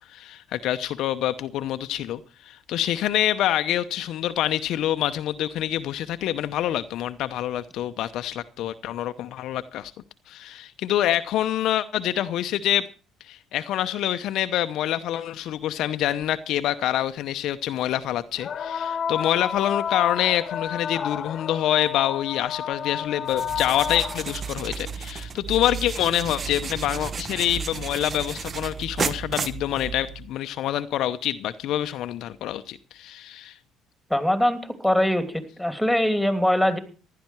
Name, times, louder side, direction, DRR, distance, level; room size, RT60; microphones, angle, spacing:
voice 1, 0.1-9.9 10.3-12.9 13.2-33.5, left 12 dB, 65° left, 10 dB, 0.8 m, -26 dB
sound 1, 16.2-16.3 18.4-24.5 26.0-26.1 26.9-27.0, left 8 dB, 50° left, 1.3 m, -30 dB
sound 2, 23.3-30.3, right 6 dB, 40° right, 1.1 m, -33 dB
voice 2, 34.1-36.8, left 1 dB, ahead, 9 dB, 2.9 m, -22 dB
16.0 x 11.5 x 4.6 m, 0.36 s
hypercardioid pair, 60°, 0 cm